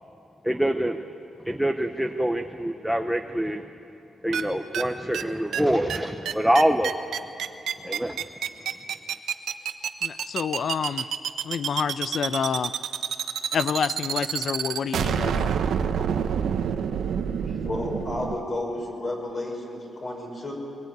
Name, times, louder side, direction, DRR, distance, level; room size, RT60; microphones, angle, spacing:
voice 1, 0.4-1.0 1.4-3.7 4.2-7.0 7.8-8.3, right 1 dB, ahead, 4 dB, 0.8 m, -25 dB
sound 1, 4.3-4.4 4.7-4.8 5.1-5.2 5.5-5.6 5.9-6.0 6.3-18.4, right 8 dB, 75° right, 1.1 m, -27 dB
voice 2, 10.0-11.1 11.4-12.7 13.5-15.5, left 7 dB, 55° left, 14 dB, 0.7 m, -28 dB
voice 3, 17.4-20.5, left 1 dB, 35° left, 0 dB, 6.0 m, -32 dB
23.5 x 22.0 x 9.4 m, 2.7 s
wide cardioid pair, 150°, 0 cm